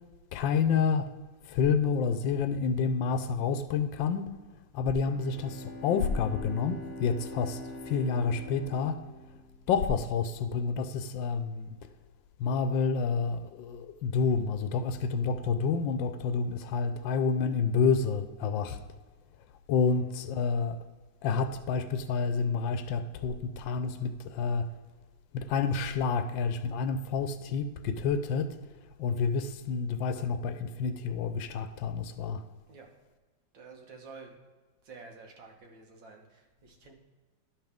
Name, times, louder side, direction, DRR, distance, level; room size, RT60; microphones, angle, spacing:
voice 1, 0.3-1.1 1.4-4.4 4.7-9.0 9.7-11.8 12.4-18.8 19.7-20.8 21.2-24.7 25.3-32.4, left 5 dB, 85° left, 1.3 m, -29 dB
Bowed string instrument, 5.0-10.2, left 1 dB, 5° left, 1.9 m, -44 dB
voice 2, 19.9-20.2 32.7-32.9 33.5-34.3 34.8-36.9, right 4 dB, 80° right, 2.0 m, -50 dB
12.0 x 5.7 x 3.5 m
omnidirectional pair, 2.0 m